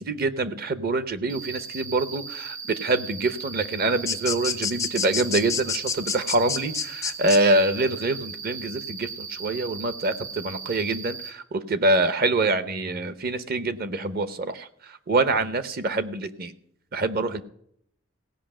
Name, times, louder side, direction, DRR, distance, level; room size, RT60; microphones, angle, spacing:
voice 1, 0.0-16.5 16.9-17.4, right 2 dB, 45° right, 12 dB, 0.8 m, -25 dB
Cricket, 1.3-11.3, right 5 dB, 75° right, 1.9 m, -38 dB
sound 1, 4.1-7.4, left 6 dB, 15° left, 0.4 m, -28 dB
16.0 x 5.5 x 8.8 m, 0.70 s
head